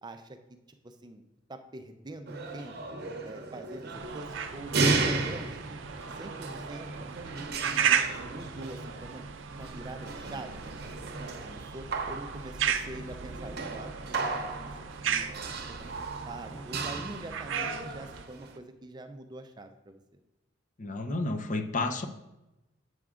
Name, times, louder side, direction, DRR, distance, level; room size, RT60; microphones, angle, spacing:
voice 1, 0.0-0.6 0.8-1.2 1.5-2.8 3.2-5.7 6.1-6.9 7.3-8.0 8.3-10.9 11.2-14.7 15.0-15.2 15.7-20.2, right 2 dB, 20° right, 7 dB, 0.5 m, -45 dB
sound 1, 2.3-18.6, right 3 dB, 55° right, 0.8 m, -35 dB
sound 2, 3.9-18.2, right 7 dB, 85° right, 0.5 m, -35 dB
voice 2, 20.8-22.1, left 2 dB, 40° left, 6 dB, 0.6 m, -31 dB
7.7 x 6.0 x 3.7 m, 0.98 s
head